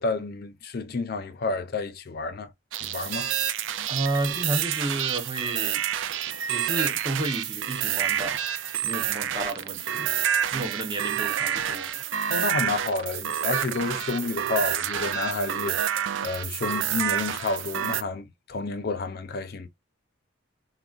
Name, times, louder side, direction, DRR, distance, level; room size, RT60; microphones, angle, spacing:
voice 1, 0.0-2.5 2.8-3.3 12.3-19.7, left 3 dB, 50° left, 0.5 m, -30 dB
sound 1, 2.7-18.0, right 10 dB, 65° right, 0.3 m, -28 dB
voice 2, 3.9-5.8 6.5-8.4 8.8-10.1 10.5-11.9, right 2 dB, 20° right, 0.6 m, -31 dB
3.7 x 2.1 x 2.3 m
head